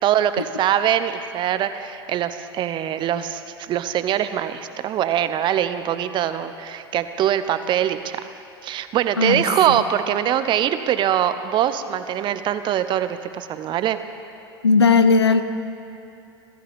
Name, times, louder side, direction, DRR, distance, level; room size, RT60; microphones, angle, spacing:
voice 1, 0.0-3.4 3.7-8.2 8.6-14.0, right 10 dB, 35° right, 11 dB, 0.8 m, -23 dB
voice 2, 9.2-9.8 14.6-15.4, left 4 dB, 85° left, 10 dB, 0.8 m, -17 dB
24.5 x 14.5 x 3.6 m, 2.7 s
figure-of-eight pair, 85°, 13 cm